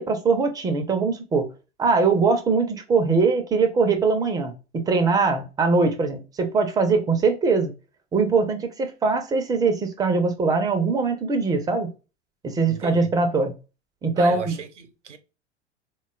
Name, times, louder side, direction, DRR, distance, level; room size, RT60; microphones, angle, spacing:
voice 1, 0.0-1.5 1.8-7.7 8.1-11.9 12.4-13.5 14.0-14.6, right 4 dB, 10° right, 0.4 m, -22 dB
voice 2, 12.7-13.1 14.1-15.2, right 6 dB, 85° right, 0.6 m, -35 dB
3.8 x 2.2 x 2.3 m
figure-of-eight pair, 90°, 35 cm